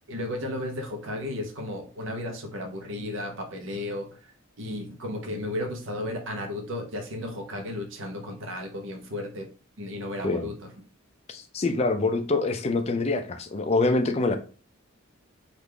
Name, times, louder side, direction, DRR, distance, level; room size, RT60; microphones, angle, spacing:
voice 1, 0.1-4.3 4.6-9.5 9.8-10.7, left 1 dB, 60° right, 0.7 m, -34 dB
voice 2, 11.3-14.4, left 3 dB, 30° left, 0.3 m, -25 dB
3.4 x 2.4 x 3.3 m
head